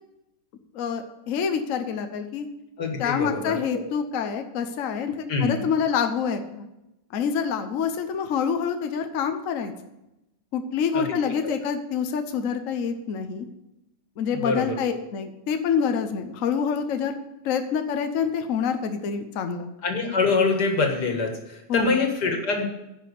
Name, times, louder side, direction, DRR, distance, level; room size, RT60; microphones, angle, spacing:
voice 1, 0.7-2.5 3.0-6.6 7.1-9.7 10.5-13.4 14.2-17.1 17.4-19.7 21.7-22.0, left 6 dB, 60° left, 7 dB, 1.1 m, -27 dB
voice 2, 2.8-3.8 5.3-5.6 10.9-11.1 11.4-11.5 14.3-14.8 19.8-22.7, left 4 dB, 90° left, 3 dB, 2.3 m, -25 dB
10.5 x 5.8 x 8.1 m, 0.92 s
omnidirectional pair, 1.7 m